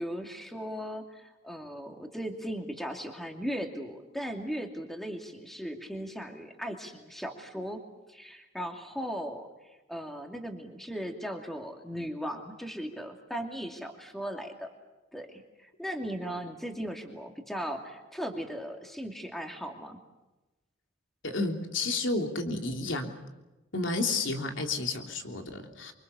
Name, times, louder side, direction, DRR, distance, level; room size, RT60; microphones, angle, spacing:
voice 1, 0.0-7.8 8.1-14.7 15.1-20.0, equal, ahead, 3 dB, 2.6 m, -37 dB
voice 2, 21.2-23.1 23.7-25.9, left 3 dB, 75° left, 4 dB, 3.4 m, -31 dB
28.5 x 24.5 x 7.0 m, 1.1 s
head